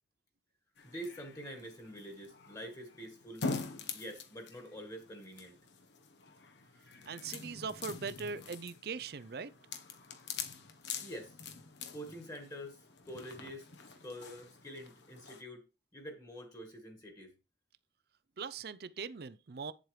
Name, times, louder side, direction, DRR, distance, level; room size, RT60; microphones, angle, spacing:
sound 1, 0.8-15.4, left 4 dB, 90° left, 1.2 m, -45 dB
voice 1, 0.8-3.5 3.9-5.6 11.0-11.4 11.9-15.6 15.9-17.3, equal, 20° left, 1.6 m, -46 dB
voice 2, 7.1-9.5 18.4-19.7, right 5 dB, 60° right, 0.5 m, -41 dB
9.1 x 7.6 x 3.2 m
head